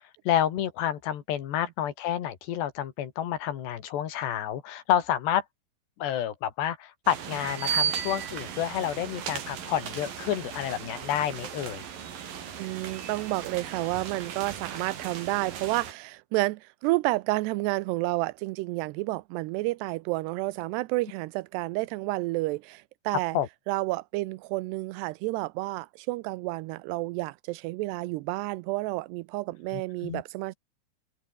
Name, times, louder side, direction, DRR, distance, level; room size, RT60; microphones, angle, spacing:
voice 1, 0.3-5.4 6.0-11.8 23.3-23.5 29.7-30.2, left 10 dB, 85° left, 4.4 m, -29 dB
sound 1, 7.1-15.9, right 8 dB, 60° right, 4.3 m, -36 dB
voice 2, 12.6-23.4 23.7-30.5, right 21 dB, 85° right, 2.8 m, -30 dB
open air
omnidirectional pair, 4.8 m